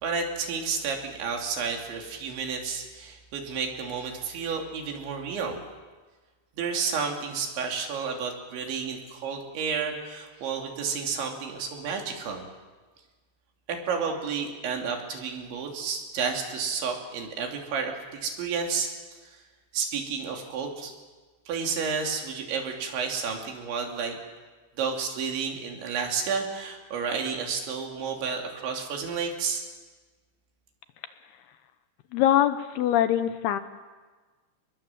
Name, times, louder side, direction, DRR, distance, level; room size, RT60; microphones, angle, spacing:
voice 1, 0.0-5.6 6.6-12.4 13.7-18.9 19.2-19.4 19.7-20.9 21.5-24.2 24.8-29.6, right 5 dB, 90° right, 2 dB, 5.3 m, -31 dB
voice 2, 32.1-33.6, left 11 dB, 75° left, 10 dB, 2.7 m, -23 dB
29.5 x 21.0 x 7.5 m, 1.4 s
omnidirectional pair, 5.1 m